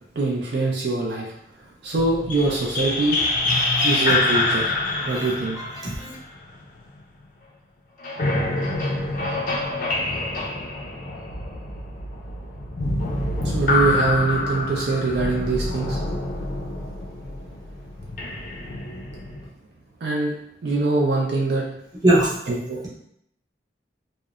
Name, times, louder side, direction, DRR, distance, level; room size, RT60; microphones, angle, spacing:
voice 1, 0.2-1.3 1.8-3.2 3.8-4.8 5.1-5.6 13.4-16.0 20.0-20.3 20.6-21.7 22.5-22.8, right 3 dB, 60° right, -2 dB, 0.4 m, -23 dB
sound 1, 1.9-7.0 8.0-19.5, left 2 dB, 45° left, 0.4 m, -26 dB
voice 2, 5.0-5.3 5.6-6.2 22.0-22.3, right 1 dB, 20° right, -7 dB, 0.7 m, -22 dB
2.8 x 2.0 x 2.3 m, 0.73 s
head